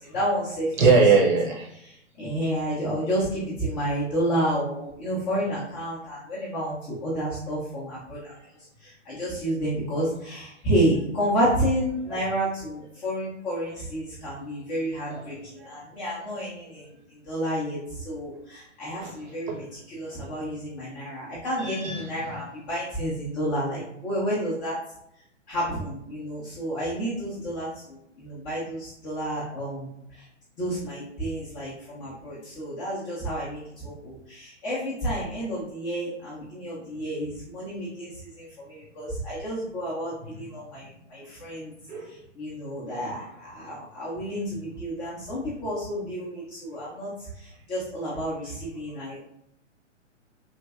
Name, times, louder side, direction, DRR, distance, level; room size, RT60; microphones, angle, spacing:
voice 1, 0.1-0.7 2.2-8.2 9.1-15.3 15.7-16.8 17.3-17.8 18.1-24.8 25.5-27.7 28.2-29.9 30.6-33.6 34.0-38.1 38.4-41.7 42.4-43.2 43.5-47.1 47.7-49.2, equal, 15° left, 0.5 m, -30 dB
voice 2, 0.8-1.6 12.1-12.2 15.1-15.3 19.0-19.1 21.6-22.3 41.9-42.0, right 4 dB, 40° right, 0.8 m, -21 dB
3.2 x 2.5 x 2.3 m
figure-of-eight pair, 125°, 37 cm